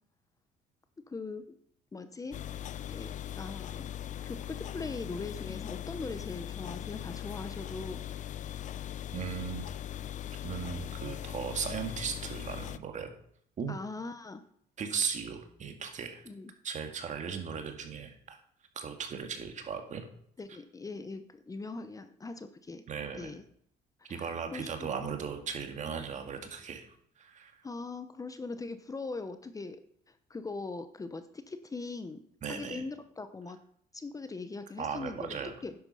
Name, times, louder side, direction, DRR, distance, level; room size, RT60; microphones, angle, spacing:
voice 1, 1.1-1.6 1.9-2.6 2.9-3.9 4.2-8.2 13.7-14.4 16.3-16.5 20.4-22.8 23.1-23.4 24.1-25.1 27.6-29.8 30.1-32.2 32.5-33.6 33.9-35.4 35.6-35.7, left 3 dB, 20° left, 10 dB, 0.8 m, -41 dB
sound 1, 2.3-12.8, left 11 dB, 45° left, 0.5 m, -40 dB
voice 2, 9.1-9.7 10.4-13.1 13.6-13.8 14.8-16.3 16.6-18.4 18.8-20.0 22.9-23.3 24.1-26.8 27.2-27.6 32.4-32.9 34.8-35.5, right 6 dB, 45° right, 5 dB, 2.0 m, -37 dB
10.5 x 8.0 x 5.5 m, 0.66 s
cardioid pair, 110°, 17 cm